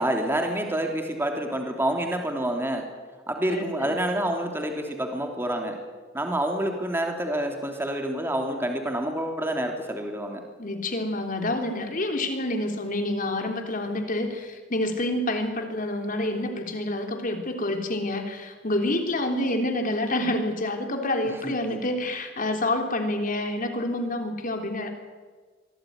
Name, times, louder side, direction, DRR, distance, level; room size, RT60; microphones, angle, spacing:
voice 1, 0.0-2.8 3.3-5.8 6.1-10.4 21.4-21.8, right 1 dB, 10° right, 3 dB, 3.2 m, -28 dB
voice 2, 3.5-3.9 10.6-24.9, left 1 dB, 45° left, 4 dB, 3.4 m, -28 dB
24.0 x 17.0 x 9.6 m, 1.4 s
head